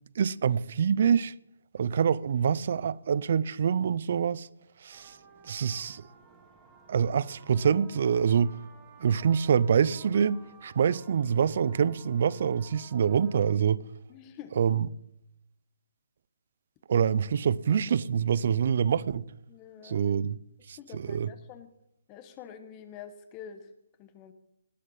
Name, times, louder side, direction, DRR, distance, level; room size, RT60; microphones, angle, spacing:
voice 1, 0.2-1.3 1.7-4.5 4.8-5.2 5.4-6.0 6.9-8.5 9.0-13.8 14.6-14.9 16.9-19.2 19.8-20.4 20.7-21.3, right 7 dB, 55° right, 0.5 m, -26 dB
sound 1, 4.9-13.5, right 5 dB, 15° right, 2.3 m, -55 dB
voice 2, 14.1-14.5 19.5-20.1 20.8-21.7 22.1-23.6 24.0-24.3, left 8 dB, 25° left, 1.2 m, -46 dB
19.0 x 6.6 x 5.6 m
hypercardioid pair, 150°, 0 cm